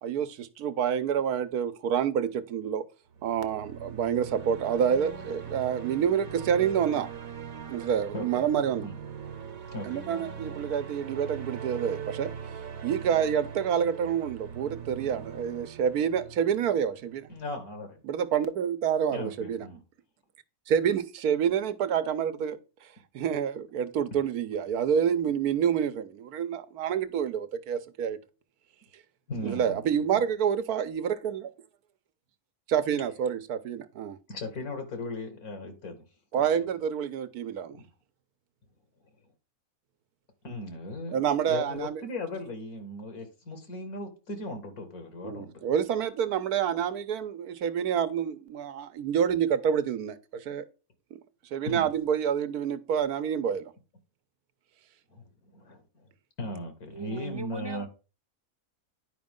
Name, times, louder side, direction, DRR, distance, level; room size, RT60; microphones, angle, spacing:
voice 1, 0.0-2.8 3.2-7.1 7.7-8.9 9.8-12.3 12.8-17.3 18.0-19.7 20.7-22.6 23.1-28.2 29.4-31.4 32.7-34.2 36.3-37.8 41.1-42.0 45.2-50.6 51.5-53.7, right 8 dB, 85° right, 1.3 m, -28 dB
sound 1, 3.1-17.3, right 7 dB, 70° right, 1.4 m, -41 dB
voice 2, 7.7-8.4 8.8-9.0 9.7-10.0 17.3-18.0 19.1-19.8 29.3-29.9 30.1-30.2 34.3-36.0 36.4-36.5 37.7-37.9 40.4-41.2 41.5-45.6 50.5-50.6 51.7-51.9 55.1-55.8 56.4-57.9, left 2 dB, 80° left, 2.6 m, -38 dB
voice 3, 56.9-57.9, right 4 dB, 30° right, 0.5 m, -38 dB
10.0 x 5.2 x 3.7 m
omnidirectional pair, 1.5 m